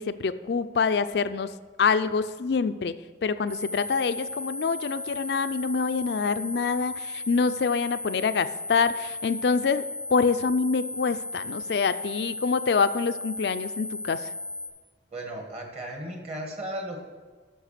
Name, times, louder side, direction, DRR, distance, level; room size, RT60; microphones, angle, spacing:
voice 1, 0.0-1.5 1.8-2.9 3.2-14.3, left 5 dB, 70° left, 12 dB, 0.4 m, -26 dB
sound 1, 3.5-14.7, left 2 dB, 60° right, 1.6 m, -36 dB
voice 2, 15.1-17.1, right 1 dB, 35° right, 2 dB, 1.9 m, -35 dB
9.9 x 6.6 x 6.7 m, 1.4 s
head